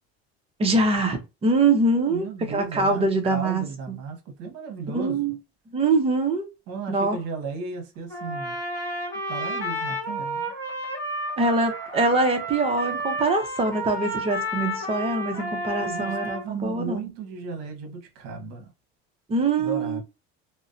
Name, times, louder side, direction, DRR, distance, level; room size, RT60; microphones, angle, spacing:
voice 1, 0.6-4.0 4.9-5.4 5.7-6.5 6.9-7.2 11.4-16.3 16.6-17.0 19.3-20.0, right 3 dB, 20° right, 0.6 m, -23 dB
voice 2, 2.1-5.3 6.7-8.6 9.3-10.5 15.8-18.7 19.6-20.0, right 4 dB, 65° right, 0.9 m, -35 dB
Trumpet, 8.1-16.4, equal, 10° left, 1.3 m, -31 dB
2.4 x 2.1 x 2.5 m
supercardioid pair, 125°, 29 cm